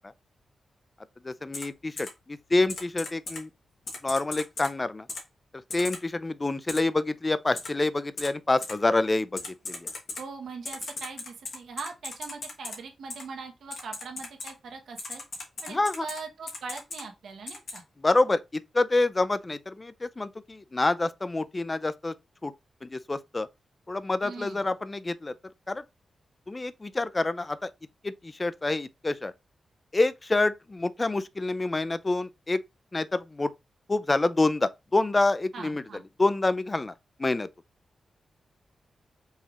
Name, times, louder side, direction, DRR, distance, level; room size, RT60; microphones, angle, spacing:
voice 1, 1.2-3.5 4.0-5.1 5.7-9.9 15.7-16.0 18.0-22.1 22.4-22.5 22.8-23.5 23.9-25.3 25.7-25.8 26.5-27.7 28.0-29.3 29.9-32.6 32.9-33.5 33.9-35.8 36.2-36.9 37.2-37.5, left 2 dB, 25° left, 0.4 m, -27 dB
Typing, 1.5-1.6 2.0-2.1 2.7-3.4 3.9-4.7 5.1-5.2 5.7-6.0 6.7-6.8 7.6-7.7 8.2-8.3 8.6-8.7 9.4-10.2 10.6-12.7 13.1-13.2 13.7-14.5 15.0-16.2 16.5-17.0 17.5-17.8, left 3 dB, 65° left, 1.2 m, -37 dB
voice 2, 10.1-15.2 15.6-17.8 24.2-24.6 35.5-36.0, right 4 dB, 85° right, 1.0 m, -41 dB
5.4 x 3.2 x 2.4 m
wide cardioid pair, 95°, 0 cm